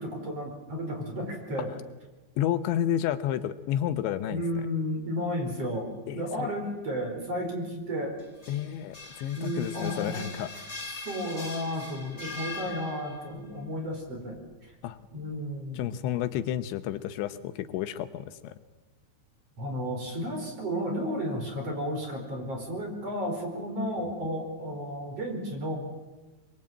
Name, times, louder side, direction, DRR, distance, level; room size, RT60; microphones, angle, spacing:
voice 1, 0.0-1.7 4.3-8.2 9.4-10.4 11.0-14.7 15.1-16.0 19.6-25.8, equal, 35° right, 3 dB, 5.4 m, -33 dB
voice 2, 2.4-4.6 6.1-6.5 8.5-10.5 14.8-15.0 15.7-18.5, left 11 dB, 80° left, 11 dB, 3.2 m, -31 dB
sound 1, 8.2-13.4, left 3 dB, 15° left, 2.7 m, -41 dB
25.0 x 23.0 x 8.8 m, 1.2 s
omnidirectional pair, 5.3 m